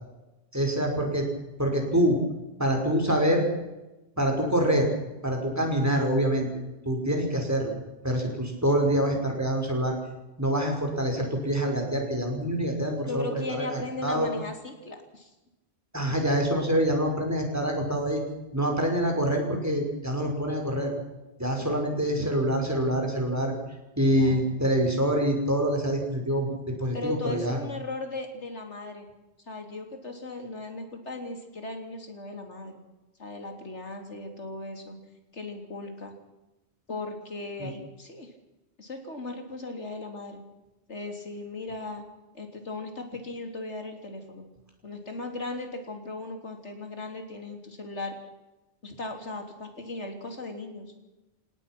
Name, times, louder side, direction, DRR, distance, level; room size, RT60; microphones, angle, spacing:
voice 1, 0.5-1.3 1.6-2.2 2.6-3.5 4.2-4.9 5.2-6.5 6.9-7.7 8.0-9.9 10.4-14.3 15.9-18.2 18.5-20.9 21.4-23.5 24.0-27.6 37.6-37.7, right 1 dB, 15° right, 2 dB, 5.6 m, -26 dB
voice 2, 13.1-15.3 24.1-24.5 26.9-29.1 29.5-32.8 33.2-35.0 35.3-36.1 36.9-38.3 38.8-40.4 40.9-42.0 42.3-44.5 44.8-48.2 48.8-50.9, left 2 dB, 85° left, 4 dB, 3.7 m, -37 dB
29.0 x 18.0 x 6.1 m, 1.0 s
omnidirectional pair, 1.1 m